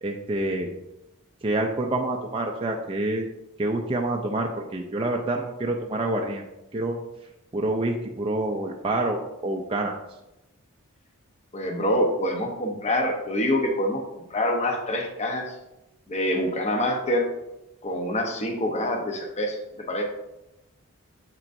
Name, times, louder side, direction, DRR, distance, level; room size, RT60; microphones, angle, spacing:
voice 1, 0.0-0.7 1.4-3.3 3.6-6.4 6.7-7.0 7.5-9.9, right 2 dB, 25° right, 1 dB, 0.5 m, -27 dB
voice 2, 11.5-15.5 16.1-17.3 17.8-20.0, left 1 dB, 30° left, 2 dB, 0.9 m, -26 dB
7.7 x 5.9 x 2.6 m, 0.93 s
head